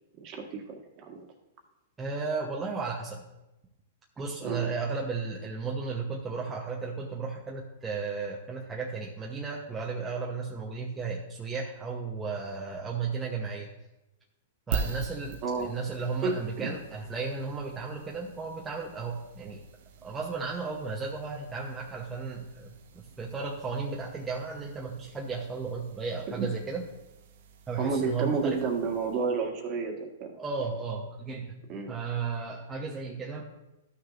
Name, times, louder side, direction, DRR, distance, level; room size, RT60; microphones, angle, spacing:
voice 1, 0.2-1.2 4.4-4.7 15.4-15.7 16.2-16.3 16.6-16.7 26.4-26.5 27.8-30.4 31.7-31.9, right 5 dB, 35° right, 2 dB, 1.6 m, -31 dB
voice 2, 2.0-3.2 4.2-13.7 14.7-19.6 20.0-26.9 27.7-28.6 30.4-33.4, right 4 dB, 15° right, -2 dB, 0.9 m, -34 dB
sound 1, 14.7-29.4, right 5 dB, 65° right, 0.8 m, -43 dB
12.5 x 6.2 x 2.6 m, 0.95 s
hypercardioid pair, 130°, 0 cm